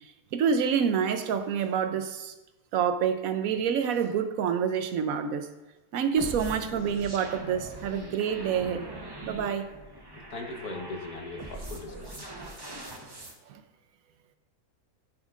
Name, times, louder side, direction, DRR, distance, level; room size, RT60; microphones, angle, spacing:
voice 1, 0.3-2.3 2.7-5.5 5.9-8.9 9.2-9.6 13.5-13.6, right 7 dB, 70° right, 8 dB, 1.0 m, -27 dB
sound 1, 6.2-13.4, right 2 dB, 25° right, 0.6 m, -42 dB
voice 2, 10.3-12.3, left 2 dB, 75° left, 2 dB, 1.7 m, -39 dB
11.5 x 6.3 x 2.5 m, 1.0 s
omnidirectional pair, 1.6 m